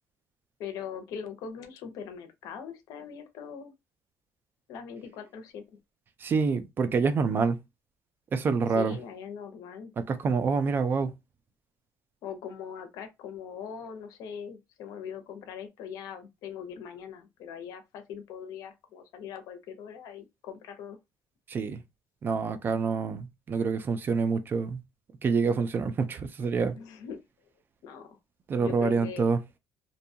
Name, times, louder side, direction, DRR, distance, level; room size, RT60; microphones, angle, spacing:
voice 1, 0.6-3.7 4.7-5.8 8.7-9.9 12.2-21.0 26.8-27.2 27.8-28.2 28.6-29.3, left 7 dB, 75° left, 0.7 m, -41 dB
voice 2, 6.2-7.6 8.3-9.0 10.0-11.1 21.5-21.8 22.2-24.8 25.2-26.8 28.5-29.4, right 5 dB, 35° right, 0.4 m, -27 dB
2.6 x 2.2 x 2.6 m
cardioid pair, 130°, 6 cm